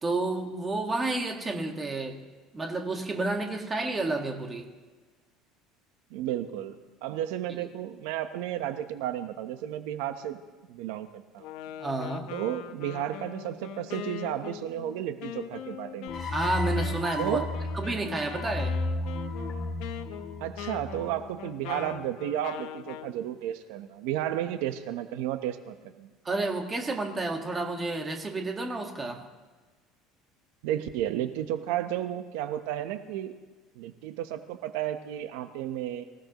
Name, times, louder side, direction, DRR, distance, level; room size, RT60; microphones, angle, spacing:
voice 1, 0.0-2.2 2.5-4.7 11.8-12.3 16.3-17.4 17.7-18.8 26.2-29.2, right 2 dB, 20° right, 3 dB, 1.7 m, -30 dB
voice 2, 6.1-10.4 10.7-11.4 12.3-16.1 17.2-17.5 20.4-26.1 30.6-33.4 33.8-36.0, right 11 dB, 85° right, 9 dB, 1.0 m, -33 dB
Wind instrument woodwind instrument, 11.4-23.1, left 11 dB, 70° left, 0.8 m, -42 dB
sound 1, 16.1-21.3, left 2 dB, 35° left, 2.9 m, -33 dB
24.5 x 16.0 x 3.0 m, 1.4 s
cardioid pair, 150°, 0 cm